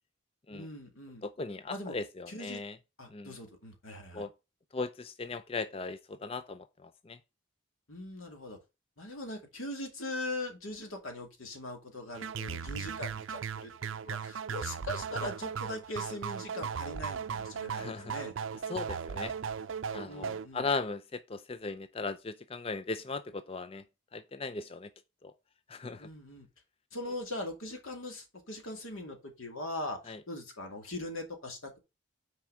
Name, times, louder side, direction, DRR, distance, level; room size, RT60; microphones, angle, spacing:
voice 1, 0.5-1.2 1.7-2.0 2.3-2.6 3.0-4.3 7.9-8.6 9.0-13.7 14.0-18.3 20.0-20.7 26.0-26.5 26.9-31.8, left 1 dB, 90° left, 2.3 m, -41 dB
voice 2, 1.2-2.8 3.1-3.3 4.1-4.3 4.7-7.2 17.8-18.1 18.7-19.3 19.9-23.8 24.1-24.9 25.2-25.3 25.7-26.1 30.1-30.2, left 3 dB, 30° left, 0.4 m, -38 dB
sound 1, 12.1-20.5, right 7 dB, 75° right, 0.5 m, -37 dB
5.9 x 4.7 x 6.4 m
head